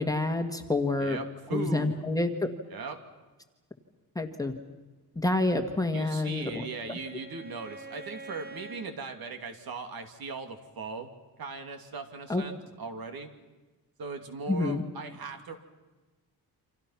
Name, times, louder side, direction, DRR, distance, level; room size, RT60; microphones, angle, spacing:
voice 1, 0.0-1.2 1.5-2.3 4.1-4.5 5.1-6.7 12.3-12.4 14.5-14.8, left 2 dB, 10° left, 4 dB, 1.6 m, -28 dB
voice 2, 1.0-2.1 2.7-3.0 5.9-11.1 11.4-13.3 14.0-15.6, right 4 dB, 65° right, 6 dB, 2.8 m, -39 dB
Bowed string instrument, 5.8-9.0, right 2 dB, 25° right, 1.9 m, -47 dB
29.0 x 26.5 x 5.9 m, 1.2 s
wide cardioid pair, 180°, 39 cm